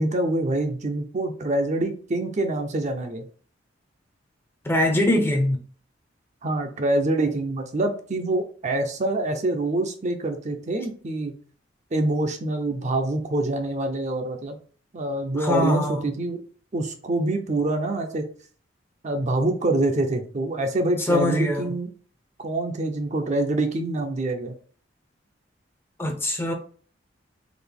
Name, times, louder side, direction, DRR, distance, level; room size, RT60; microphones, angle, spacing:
voice 1, 0.0-3.3 6.4-11.3 11.9-14.6 14.9-16.4 16.7-18.3 19.0-21.9 22.4-24.5, right 2 dB, 40° right, 0.6 m, -25 dB
voice 2, 4.7-5.6 15.3-16.1 21.1-21.7 26.0-26.5, left 1 dB, 15° left, 0.6 m, -23 dB
3.9 x 2.5 x 3.5 m
head